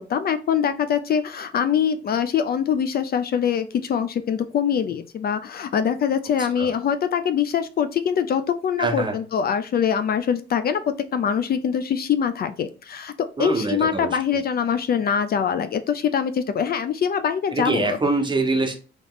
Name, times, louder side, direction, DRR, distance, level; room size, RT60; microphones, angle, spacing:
voice 1, 0.0-13.1 13.4-18.0, left 8 dB, 50° left, 10 dB, 0.5 m, -23 dB
voice 2, 8.8-9.1 13.4-14.1 17.5-18.8, right 3 dB, 25° right, 3 dB, 1.1 m, -24 dB
3.5 x 3.1 x 3.8 m, 0.35 s
cardioid pair, 90°, 20 cm